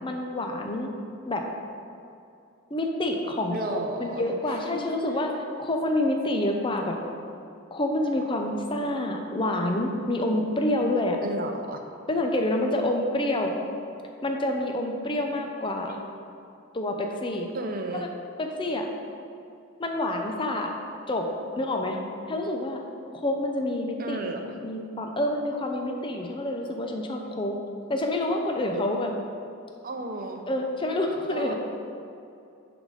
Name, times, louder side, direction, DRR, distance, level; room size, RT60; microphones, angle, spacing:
voice 1, 0.0-0.9 1.3-1.4 2.7-7.0 7.7-11.2 12.1-13.5 14.2-16.0 16.7-17.5 17.9-18.1 18.4-18.9 19.8-20.7 21.1-21.3 21.6-22.0 22.3-22.8 23.1-27.6 27.9-29.1 30.5-31.5, left 1 dB, 25° left, 2 dB, 0.5 m, -28 dB
voice 2, 3.5-4.2 11.2-11.8 17.5-18.1 24.0-24.4 29.8-30.4 31.3-31.5, right 2 dB, 40° right, 4 dB, 0.6 m, -33 dB
9.7 x 4.0 x 4.9 m, 2.6 s
head